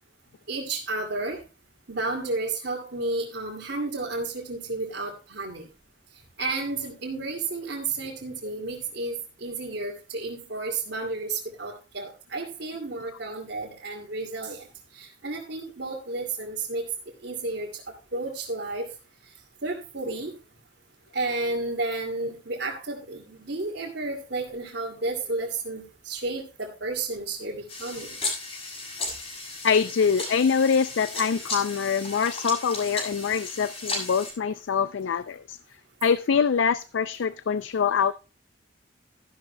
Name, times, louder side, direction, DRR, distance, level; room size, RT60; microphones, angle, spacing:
voice 1, 0.5-1.4 1.9-5.7 6.4-14.7 14.9-16.8 17.2-17.7 18.1-18.9 19.6-20.3 21.1-28.2, right 3 dB, 65° right, 2.3 m, -32 dB
sound 1, 27.7-34.3, left 2 dB, 30° left, 5.9 m, -35 dB
voice 2, 29.6-35.6 36.0-38.1, left 6 dB, 80° left, 0.4 m, -24 dB
14.0 x 11.5 x 2.2 m
head